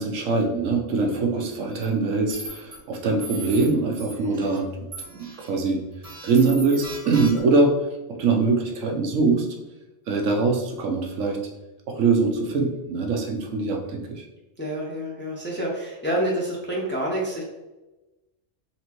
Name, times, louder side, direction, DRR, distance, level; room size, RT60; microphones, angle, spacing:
voice 1, 0.0-4.8 5.1-5.8 6.2-7.7 8.2-9.5 10.1-11.4 11.9-14.2, right 3 dB, 80° right, 1 dB, 1.1 m, -23 dB
sound 1, 1.7-1.8 2.3-2.8 3.2-3.7 4.0-4.6 4.9-5.5 6.0-7.6, right 2 dB, 30° right, 1.0 m, -38 dB
voice 2, 14.6-17.4, right 1 dB, 10° left, -4 dB, 0.7 m, -28 dB
4.3 x 3.3 x 3.0 m, 1.0 s
omnidirectional pair, 1.3 m